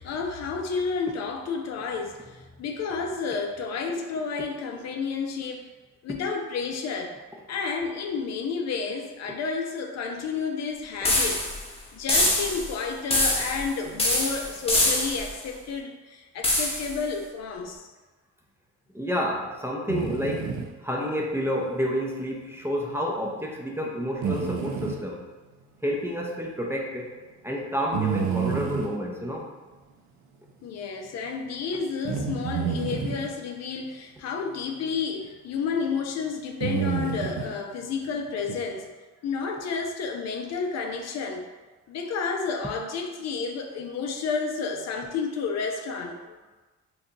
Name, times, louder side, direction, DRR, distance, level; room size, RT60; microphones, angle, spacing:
voice 1, 0.0-2.2 2.6-5.6 6.0-7.1 7.5-11.4 11.9-17.9 30.6-38.9 39.2-41.4 41.9-46.3, left 5 dB, 60° left, 2 dB, 0.5 m, -31 dB
sound 1, 11.0-11.6 12.1-12.7 13.1-13.7 14.0-15.3 16.4-16.9, left 1 dB, 20° left, 0.7 m, -24 dB
voice 2, 18.9-20.5 20.8-25.2 25.8-27.1 27.4-29.5, equal, 10° right, -2 dB, 0.4 m, -29 dB
sound 2, 19.9-20.7 24.2-25.0 27.9-28.9 32.0-33.3 35.2-35.3 36.6-37.5 38.5-38.6, right 6 dB, 70° right, 0.5 m, -29 dB
2.8 x 2.2 x 3.8 m, 1.2 s
cardioid pair, 90°, 30 cm